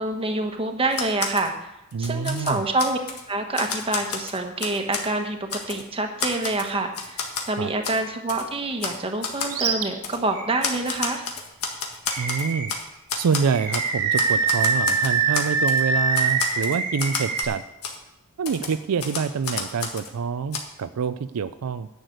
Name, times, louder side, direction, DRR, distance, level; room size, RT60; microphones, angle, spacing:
voice 1, 0.0-1.5 2.0-3.0 3.3-11.3, right 2 dB, 25° right, 4 dB, 1.2 m, -26 dB
Typewriter, 0.9-1.5 1.9-3.2 3.5-5.1 5.5-5.8 6.2-7.5 7.8-8.0 8.3-8.4 8.8-9.0 9.2-9.5 10.0-10.2 10.6-12.8 13.1-13.9 14.1-15.8 16.1-17.5 17.8-18.0 18.4-20.1 20.5-20.6, left 5 dB, 75° left, 1.7 m, -30 dB
voice 2, 1.9-2.6 7.6-7.7 12.2-12.7 13.2-17.6 18.4-21.9, right 6 dB, 75° right, 11 dB, 0.4 m, -26 dB
Animal, 9.5-9.9 10.3-10.5 12.1-12.8 13.5-17.4, right 5 dB, 90° right, 1.8 m, -24 dB
10.5 x 6.7 x 7.8 m, 0.90 s
head